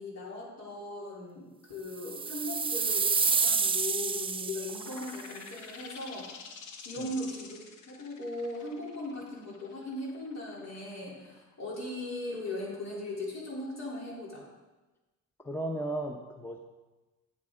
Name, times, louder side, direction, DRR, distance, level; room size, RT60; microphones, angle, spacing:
voice 1, 0.0-6.4 6.8-7.6 7.9-14.4, left 2 dB, 60° left, -4 dB, 3.3 m, -38 dB
sound 1, 2.0-5.2, right 5 dB, 20° right, 0.4 m, -29 dB
sound 2, 4.6-12.0, left 5 dB, 85° left, 1.0 m, -48 dB
voice 2, 15.4-16.6, right 1 dB, 5° left, 3 dB, 0.8 m, -35 dB
8.7 x 8.2 x 3.7 m, 1.1 s
cardioid pair, 90°, 30 cm